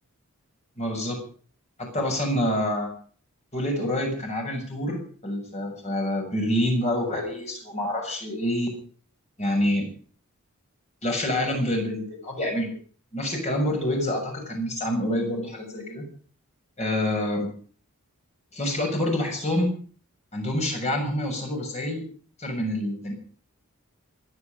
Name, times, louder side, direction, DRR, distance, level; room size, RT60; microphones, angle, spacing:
voice 1, 0.8-1.2 1.8-2.9 3.5-8.7 9.4-9.9 11.0-12.7 13.1-16.1 16.8-17.5 18.5-19.7 20.3-22.0 22.4-23.1, left 1 dB, 30° left, 1 dB, 7.0 m, -27 dB
27.0 x 9.8 x 5.2 m, 0.44 s
head